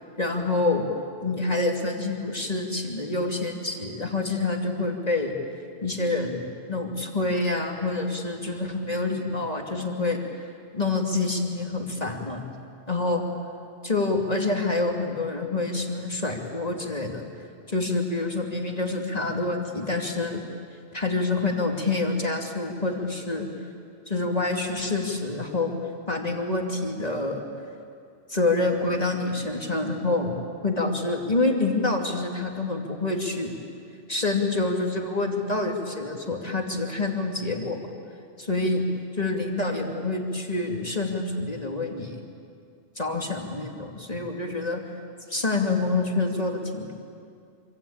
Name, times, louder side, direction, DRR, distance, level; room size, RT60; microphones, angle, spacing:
voice 1, 0.2-0.8 1.2-5.4 5.8-10.2 10.7-12.4 12.9-13.2 13.8-17.2 17.7-20.4 20.9-23.5 24.1-25.7 26.1-27.4 28.3-30.3 30.6-33.5 34.1-37.8 38.4-38.8 39.2-42.2 43.0-44.8 45.3-46.9, left 2 dB, 35° left, 1 dB, 2.6 m, -27 dB
26.5 x 25.0 x 8.8 m, 2.3 s
omnidirectional pair, 1.2 m